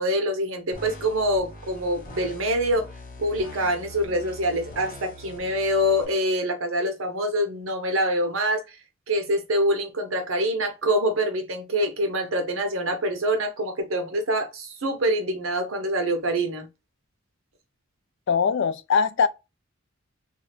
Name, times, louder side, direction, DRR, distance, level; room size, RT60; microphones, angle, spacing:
voice 1, 0.0-2.9 3.2-8.8 9.1-16.7, equal, 80° right, 0.9 m, -25 dB
sound 1, 0.7-6.0, left 1 dB, 45° left, 1.1 m, -42 dB
voice 2, 18.3-19.3, left 6 dB, 60° left, 0.4 m, -21 dB
2.7 x 2.5 x 3.1 m
head